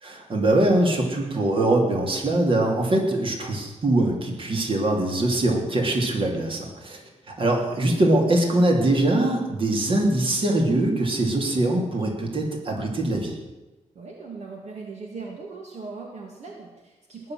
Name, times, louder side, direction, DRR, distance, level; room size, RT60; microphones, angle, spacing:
voice 1, 0.0-7.0 7.3-13.3, right 1 dB, 45° right, 1 dB, 3.0 m, -22 dB
voice 2, 13.9-17.3, right 4 dB, 65° right, 0 dB, 2.3 m, -39 dB
19.5 x 6.9 x 7.8 m, 1.1 s
wide cardioid pair, 115°, 12 cm